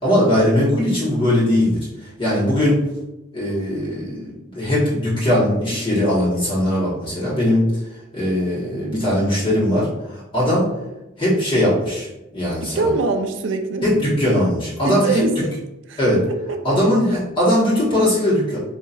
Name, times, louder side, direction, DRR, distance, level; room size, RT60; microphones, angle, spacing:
voice 1, 0.0-1.9 2.2-2.8 3.3-7.6 8.1-10.7 11.2-12.9 13.8-15.2 16.0-16.2 16.6-18.6, left 1 dB, 25° left, -9 dB, 1.4 m, -19 dB
voice 2, 12.6-13.9 14.8-15.5 15.9-16.0 16.3-16.6, right 3 dB, 70° right, 6 dB, 0.4 m, -23 dB
4.2 x 2.8 x 2.5 m, 0.97 s
head